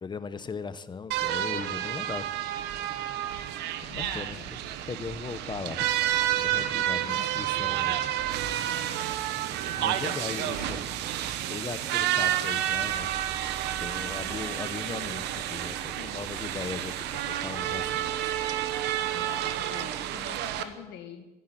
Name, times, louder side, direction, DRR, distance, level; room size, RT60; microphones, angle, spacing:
voice 1, 0.0-2.3 2.7-3.0 3.8-4.6 4.9-5.8 6.4-8.0 8.7-9.1 9.8-10.9 11.5-13.1 13.7-16.9 17.3-18.1 18.8-19.2, left 5 dB, 25° left, 14 dB, 0.9 m, -38 dB
sound 1, 1.1-20.6, right 12 dB, 85° right, 1.1 m, -30 dB
voice 2, 3.9-4.5 7.1-7.3 10.1-10.7 16.0-16.2 19.1-21.3, left 9 dB, 90° left, 8 dB, 1.8 m, -45 dB
sound 2, 11.5-20.7, right 5 dB, 70° right, 4.4 m, -52 dB
13.0 x 10.5 x 9.9 m, 1.1 s
cardioid pair, 110°, 17 cm